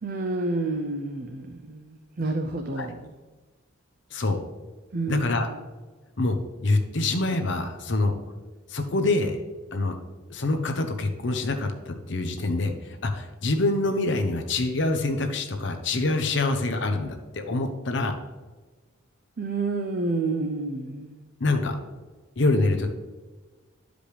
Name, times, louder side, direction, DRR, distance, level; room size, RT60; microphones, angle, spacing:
voice 1, 0.0-3.0 4.9-5.5 19.4-21.3, right 2 dB, 45° right, 4 dB, 0.5 m, -29 dB
voice 2, 5.1-5.5 6.2-8.1 8.7-9.4 9.7-10.0 10.3-18.1 21.4-21.8 22.4-22.9, left 2 dB, 60° left, 5 dB, 0.7 m, -25 dB
11.5 x 5.1 x 3.3 m, 1.3 s
head